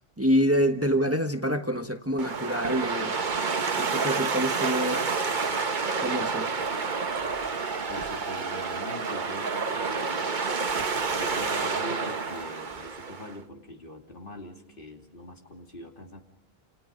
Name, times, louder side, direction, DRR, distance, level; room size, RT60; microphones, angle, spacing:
voice 1, 0.2-3.2 3.8-5.0 6.0-6.5, equal, 15° right, 6 dB, 1.3 m, -26 dB
sound 1, 2.2-13.4, right 4 dB, 50° right, 1.2 m, -29 dB
voice 2, 7.9-10.3 11.1-16.2, left 1 dB, 60° left, 2 dB, 3.0 m, -42 dB
29.5 x 28.5 x 5.2 m, 0.76 s
omnidirectional pair, 1.0 m